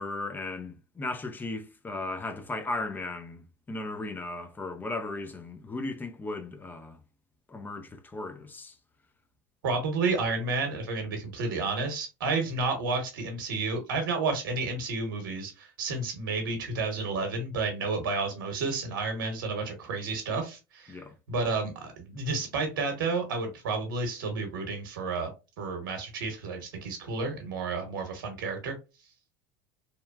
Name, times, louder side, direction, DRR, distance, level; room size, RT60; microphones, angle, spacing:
voice 1, 0.0-7.0 7.5-8.8 20.9-21.1, left 2 dB, 15° left, 0.5 m, -36 dB
voice 2, 9.6-21.0 21.3-25.3 25.6-28.7, right 3 dB, 85° right, 0.9 m, -31 dB
2.8 x 2.2 x 2.2 m
supercardioid pair, 100°, 11 cm